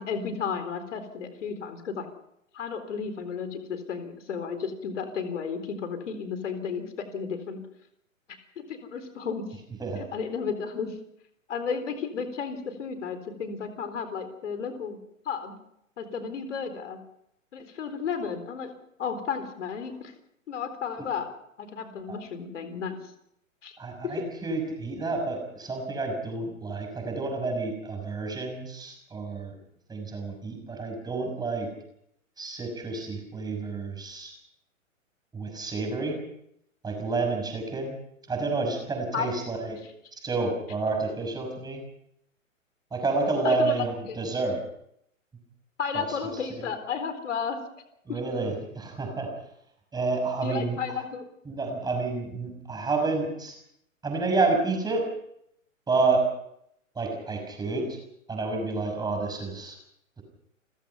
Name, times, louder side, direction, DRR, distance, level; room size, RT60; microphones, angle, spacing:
voice 1, 0.0-2.1 2.5-6.8 7.1-7.6 8.6-9.6 10.0-11.0 11.5-15.0 15.3-15.5 16.0-17.0 17.5-18.7 19.0-20.1 20.5-21.3 21.6-23.0 23.6-23.7 24.0-24.2 39.1-39.3 43.4-43.7 44.1-44.2 45.8-47.6 48.1-48.2 50.4-51.2, left 6 dB, 60° left, 9 dB, 4.1 m, -33 dB
voice 2, 23.8-29.5 29.9-31.7 32.4-34.3 35.3-36.2 36.8-38.0 38.3-39.8 40.1-41.8 42.9-44.6 45.9-46.6 48.1-49.3 49.9-50.8 51.5-53.6 54.0-55.1 55.9-56.3 56.9-58.0 58.3-59.8, right 3 dB, 10° right, 3 dB, 6.0 m, -29 dB
29.5 x 15.5 x 5.7 m, 0.74 s
figure-of-eight pair, 120°, 40 cm